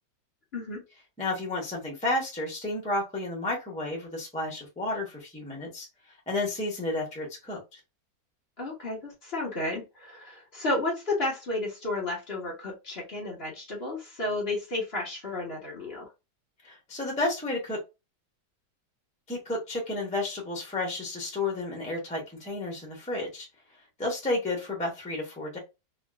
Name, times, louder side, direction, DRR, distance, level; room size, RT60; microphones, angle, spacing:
voice 1, 1.2-5.9 6.3-7.8 16.6-17.8 19.3-23.5 24.0-25.6, left 2 dB, 5° left, -1 dB, 0.8 m, -31 dB
voice 2, 8.6-16.1, left 2 dB, 40° left, -1 dB, 1.2 m, -32 dB
3.0 x 2.9 x 2.4 m, 0.25 s
omnidirectional pair, 1.8 m